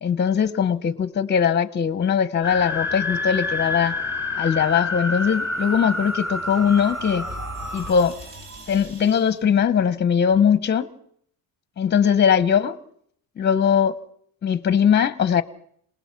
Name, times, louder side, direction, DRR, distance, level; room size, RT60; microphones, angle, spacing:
voice 1, 0.0-3.9 4.4-7.3 7.7-8.2 8.7-10.9 11.8-12.7 13.4-14.0 14.4-15.4, left 7 dB, 25° left, 0.8 m, -20 dB
sound 1, 2.4-7.9, left 2 dB, 5° right, 2.6 m, -28 dB
sound 2, 5.0-9.5, right 1 dB, 55° right, 6.5 m, -41 dB
27.0 x 19.0 x 5.9 m
cardioid pair, 145°, 39 cm